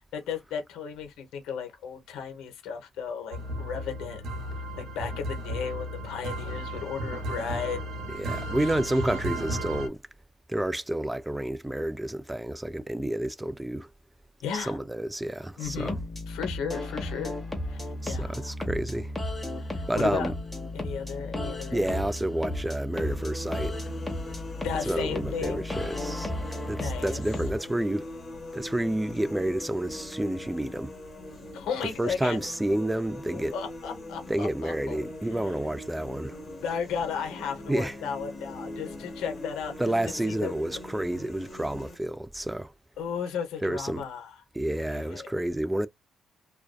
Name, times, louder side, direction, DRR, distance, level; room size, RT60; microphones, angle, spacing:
voice 1, 0.1-4.2 4.6-7.8 8.4-8.7 14.4-14.8 15.6-16.0 16.3-17.4 17.7-18.5 19.6-20.3 20.7-21.9 24.6-25.6 26.7-27.2 31.5-32.4 33.3-35.0 36.6-39.9 40.3-40.5 43.0-44.4 44.8-45.3, left 7 dB, 90° left, 0.7 m, -35 dB
sound 1, 3.3-9.9, right 1 dB, 85° right, 0.8 m, -34 dB
voice 2, 8.2-10.0 10.5-13.9 14.5-16.0 18.0-19.1 19.9-20.3 21.7-23.8 24.9-26.3 26.7-28.1 28.5-30.9 32.0-33.5 34.3-36.4 37.7-37.9 39.8-42.7 43.6-44.0 44.5-45.9, right 1 dB, 10° right, 0.3 m, -30 dB
sound 2, 15.6-27.6, left 1 dB, 10° left, 1.0 m, -34 dB
sound 3, 22.9-42.0, left 1 dB, 35° left, 1.2 m, -42 dB
2.5 x 2.2 x 2.2 m
cardioid pair, 90°, 0 cm